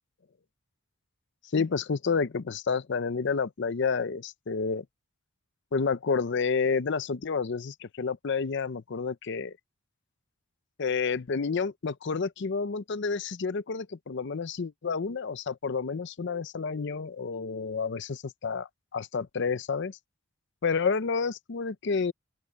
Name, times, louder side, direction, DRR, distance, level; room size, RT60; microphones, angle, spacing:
voice 1, 1.5-4.8 5.7-9.5 10.8-20.0 20.6-22.1, left 5 dB, 55° left, 0.5 m, -30 dB
open air
head